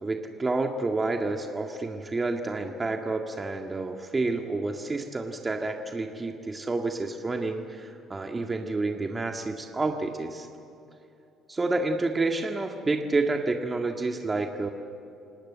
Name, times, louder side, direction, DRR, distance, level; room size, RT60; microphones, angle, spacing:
voice 1, 0.0-10.5 11.5-14.7, right 3 dB, 25° right, 3 dB, 1.9 m, -29 dB
28.0 x 18.5 x 8.2 m, 2.8 s
hypercardioid pair, 60°, 0 cm